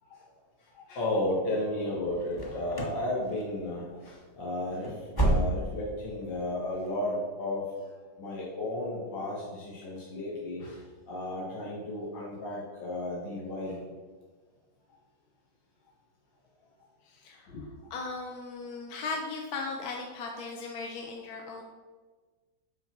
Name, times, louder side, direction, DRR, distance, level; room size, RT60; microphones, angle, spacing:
voice 1, 0.8-4.9 5.2-7.6 8.2-10.8 11.1-13.8 17.5-17.6, left 1 dB, 80° left, -7 dB, 2.4 m, -33 dB
sound 1, 2.3-3.1 3.3-3.8 4.1-4.2 4.6-5.9 6.2-6.3 6.8-6.9, right 2 dB, 15° left, 0.8 m, -29 dB
voice 2, 17.0-17.5 17.9-21.6, left 3 dB, 60° left, 1 dB, 1.1 m, -37 dB
8.2 x 4.0 x 5.9 m, 1.4 s
omnidirectional pair, 2.0 m